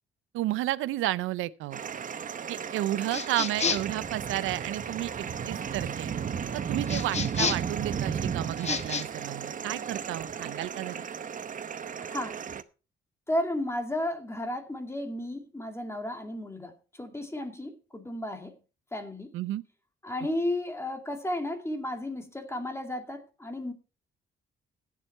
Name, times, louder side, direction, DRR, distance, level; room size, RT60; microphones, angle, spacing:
voice 1, 0.3-1.8 2.5-5.1 5.5-6.1 6.5-11.0 19.3-19.6, right 15 dB, 85° right, 0.6 m, -32 dB
sound 1, 1.7-12.6, right 7 dB, 40° right, 0.9 m, -34 dB
sound 2, 3.1-4.0 6.9-7.8 8.6-9.1, left 5 dB, 35° left, 1.0 m, -30 dB
voice 2, 12.0-12.4 13.3-18.5 18.9-19.3 20.0-23.7, left 1 dB, 15° left, 2.3 m, -33 dB
15.5 x 7.6 x 4.5 m
cardioid pair, 90°, 20 cm